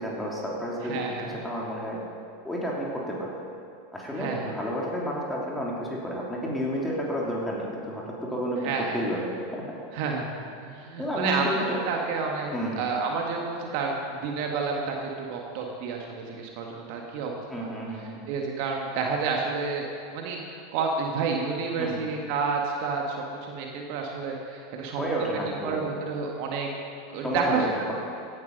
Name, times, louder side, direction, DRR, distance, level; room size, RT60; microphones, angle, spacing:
voice 1, 0.0-1.0 1.4-2.0 2.4-3.3 3.9-9.6 11.0-11.8 12.5-12.9 17.5-18.2 21.8-22.1 25.0-25.9 27.1-27.9, equal, 10° left, -4 dB, 3.1 m, -31 dB
voice 2, 0.9-1.4 4.2-4.5 8.6-9.0 9.9-10.3 10.6-12.5 12.8-17.7 18.3-19.9 20.1-23.2 23.4-26.7 27.1-27.7, right 5 dB, 55° right, 1 dB, 1.8 m, -30 dB
16.5 x 10.5 x 5.4 m, 2.4 s
figure-of-eight pair, 85°, 0 cm